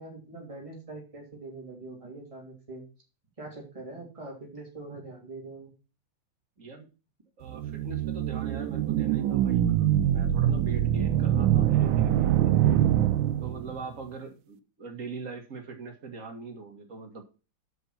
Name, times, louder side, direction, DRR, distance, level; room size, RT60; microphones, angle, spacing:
voice 1, 0.0-2.8 3.4-5.7, right 2 dB, 15° right, -2 dB, 3.1 m, -43 dB
voice 2, 6.6-6.9 7.4-12.7 13.4-17.2, right 4 dB, 40° right, 2 dB, 2.2 m, -42 dB
sound 1, 7.5-13.8, right 11 dB, 85° right, 1.4 m, -24 dB
8.0 x 6.3 x 5.8 m, 0.32 s
omnidirectional pair, 2.1 m